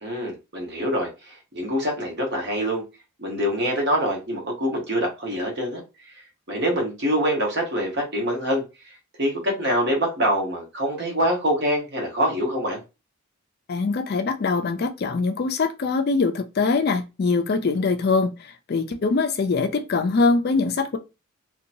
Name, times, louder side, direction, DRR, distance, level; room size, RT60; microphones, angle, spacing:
voice 1, 0.0-2.8 3.2-5.8 6.5-12.8, equal, 50° right, 1.1 m, -25 dB
voice 2, 13.7-21.0, left 4 dB, 45° left, 0.4 m, -23 dB
2.8 x 2.3 x 2.6 m
head